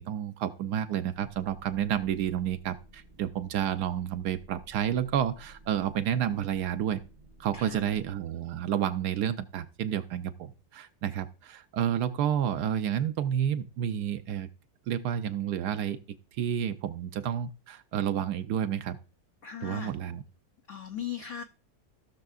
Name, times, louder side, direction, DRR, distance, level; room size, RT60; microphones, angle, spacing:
voice 1, 0.0-7.0 7.4-14.5 14.9-16.0 16.3-19.0 19.6-20.2, right 9 dB, 70° right, 11 dB, 1.1 m, -30 dB
sound 1, 1.1-8.2, right 2 dB, 50° right, 0.6 m, -54 dB
voice 2, 7.5-7.9 19.4-19.9 20.7-21.4, left 9 dB, 75° left, 5 dB, 0.6 m, -38 dB
16.0 x 6.4 x 2.4 m, 0.33 s
omnidirectional pair, 2.0 m